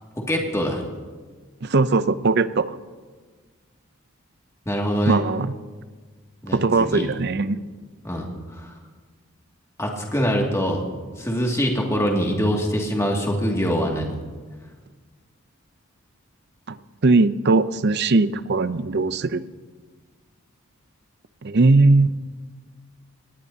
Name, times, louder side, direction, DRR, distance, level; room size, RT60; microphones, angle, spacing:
voice 1, 0.2-0.8 4.7-5.2 6.4-7.1 8.0-8.7 9.8-10.8 11.2-14.2, equal, 15° left, 0 dB, 2.2 m, -24 dB
voice 2, 1.6-2.7 5.1-5.5 6.5-7.6 16.7-16.8 17.0-19.4 21.4-22.1, right 3 dB, 50° right, 14 dB, 0.6 m, -19 dB
23.5 x 19.0 x 2.8 m, 1.4 s
head